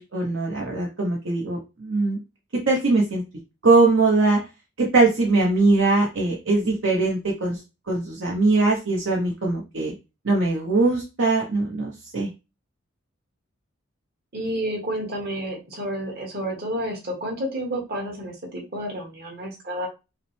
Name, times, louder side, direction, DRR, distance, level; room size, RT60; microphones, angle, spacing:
voice 1, 0.0-2.2 2.7-3.2 3.6-4.4 4.8-7.6 7.9-9.9 10.2-12.3, right 3 dB, 65° right, -2 dB, 0.9 m, -21 dB
voice 2, 14.3-19.9, right 1 dB, 50° right, 0 dB, 1.4 m, -30 dB
5.6 x 2.1 x 3.2 m, 0.27 s
head